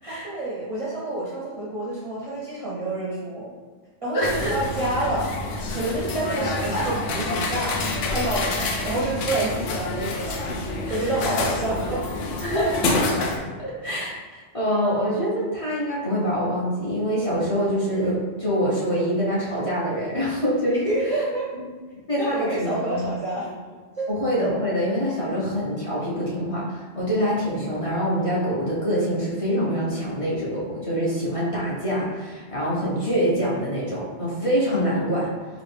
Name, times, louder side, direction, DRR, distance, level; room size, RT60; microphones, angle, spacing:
voice 1, 0.1-3.5 4.0-5.4 5.7-10.4 10.9-12.0 20.8-21.5 22.2-23.5 24.0-24.1, right 2 dB, 40° right, -8 dB, 0.5 m, -28 dB
voice 2, 4.1-4.5 6.4-7.0 10.9-11.2 12.4-13.1 13.6-20.8 21.1-21.2 22.1-23.1 24.1-35.3, equal, 30° left, -8 dB, 0.8 m, -25 dB
sound 1, 4.2-13.4, left 2 dB, 85° left, 0.9 m, -28 dB
4.0 x 2.4 x 3.3 m, 1.5 s
omnidirectional pair, 1.2 m